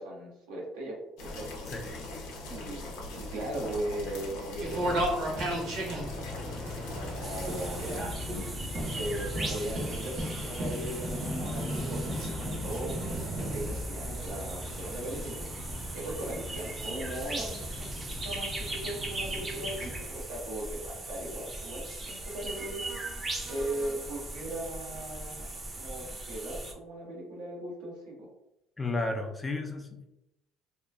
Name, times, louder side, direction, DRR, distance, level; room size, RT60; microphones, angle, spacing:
voice 1, 0.0-1.5 2.5-2.8 3.1-5.2 6.0-6.4 6.9-8.0 8.7-12.9 13.4-15.4 15.9-22.8 23.4-28.3, right 1 dB, 90° right, -2 dB, 0.9 m, -38 dB
sound 1, 1.2-8.0, left 2 dB, 85° left, 0.6 m, -41 dB
voice 2, 1.7-2.0 28.8-30.1, left 2 dB, 20° left, 3 dB, 0.4 m, -33 dB
sound 2, 4.6-20.0, equal, 60° right, 0.9 m, -36 dB
sound 3, 7.2-26.7, right 2 dB, 30° right, 0.6 m, -39 dB
2.8 x 2.3 x 2.2 m, 0.87 s
supercardioid pair, 90°, 0 cm